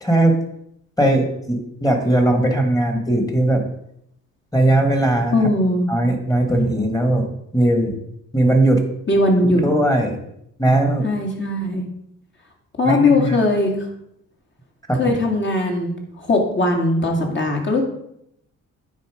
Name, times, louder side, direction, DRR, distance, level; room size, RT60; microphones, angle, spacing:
voice 1, 0.0-0.4 1.0-3.6 4.5-5.4 5.9-7.3 7.5-7.9 8.3-8.8 9.6-10.2 10.6-11.1 12.8-13.4 14.9-15.2, right 1 dB, 10° left, 5 dB, 1.8 m, -18 dB
voice 2, 5.3-5.9 9.1-9.6 11.0-11.9 12.8-13.9 15.0-17.8, left 2 dB, 40° left, 1 dB, 2.2 m, -19 dB
9.6 x 4.3 x 5.0 m, 0.76 s
cardioid pair, 90°, 30 cm